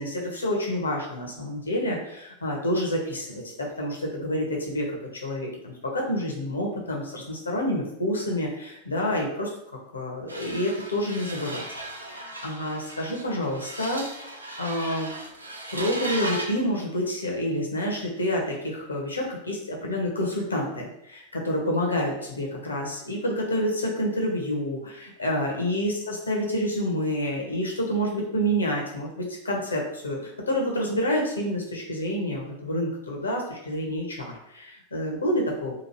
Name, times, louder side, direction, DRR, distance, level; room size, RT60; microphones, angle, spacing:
voice 1, 0.0-5.0 5.2-9.5 9.9-11.6 11.9-14.3 14.6-15.1 15.7-35.7, equal, 75° left, -1 dB, 0.8 m, -28 dB
sound 1, 10.3-16.6, right 1 dB, 85° right, 0.4 m, -36 dB
2.9 x 2.4 x 2.9 m, 0.80 s
figure-of-eight pair, 90°, 0 cm